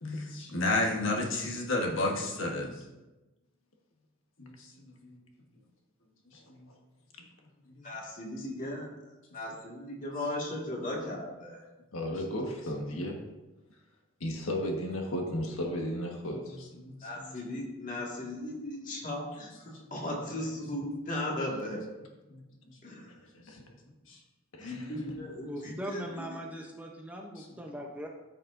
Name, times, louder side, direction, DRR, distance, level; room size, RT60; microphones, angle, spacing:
voice 1, 0.0-2.8 4.4-5.2 6.5-6.7 7.8-7.9 8.4-8.5 16.3-16.4 16.8-17.6 22.3-22.8 23.5-23.6 24.1-24.2 24.7-24.8 27.4-27.5, left 2 dB, 65° left, 0 dB, 1.3 m, -33 dB
voice 2, 7.8-8.9 9.3-11.6 17.0-21.8 22.8-23.1 24.6-26.4, left 1 dB, 35° left, -2 dB, 1.9 m, -37 dB
voice 3, 11.9-13.2 14.2-16.6 23.5-23.6 24.5-24.9 25.6-25.7, equal, 80° left, 1 dB, 1.4 m, -34 dB
voice 4, 25.5-28.1, equal, 5° right, 1 dB, 0.7 m, -40 dB
14.0 x 6.5 x 2.6 m, 1.1 s
head